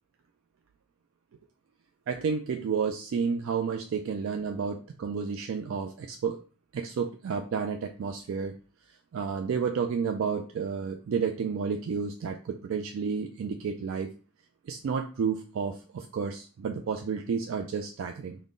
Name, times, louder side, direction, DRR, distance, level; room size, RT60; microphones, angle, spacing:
voice 1, 2.1-6.4 6.7-8.5 9.1-14.1 14.7-18.4, right 6 dB, 70° right, 4 dB, 0.3 m, -31 dB
3.7 x 2.1 x 3.7 m, 0.37 s
head